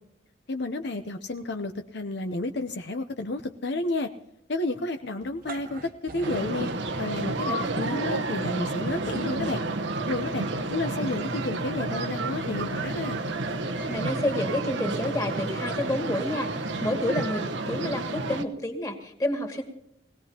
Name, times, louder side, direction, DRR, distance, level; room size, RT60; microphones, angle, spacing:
voice 1, 0.5-4.1 4.5-6.7 7.0-9.6 10.1-13.2, left 2 dB, 65° left, 7 dB, 0.8 m, -31 dB
sound 1, 5.2-7.8, right 2 dB, 50° right, 1.0 m, -43 dB
sound 2, 6.2-18.4, right 2 dB, 75° right, 1.0 m, -30 dB
voice 2, 13.9-19.6, left 1 dB, 20° left, 2 dB, 2.2 m, -29 dB
21.5 x 17.5 x 2.9 m, 0.77 s
head